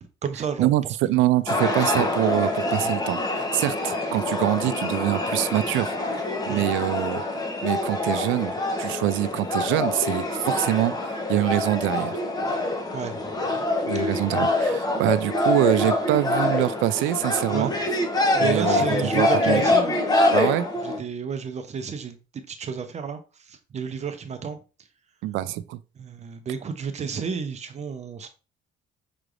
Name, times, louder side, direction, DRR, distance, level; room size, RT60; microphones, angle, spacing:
voice 1, 0.2-1.2 6.4-6.7 12.9-13.5 17.5-17.8 18.3-20.0 20.8-24.6 26.0-28.3, right 6 dB, 35° right, 0.6 m, -32 dB
voice 2, 1.1-7.2 7.6-12.2 13.9-17.7 18.4-18.8 19.1-19.6 20.3-20.7 25.2-25.8, right 15 dB, 80° right, 0.4 m, -25 dB
sound 1, 1.5-21.0, left 2 dB, 20° left, 0.9 m, -25 dB
5.9 x 3.2 x 2.5 m
cardioid pair, 130°, 20 cm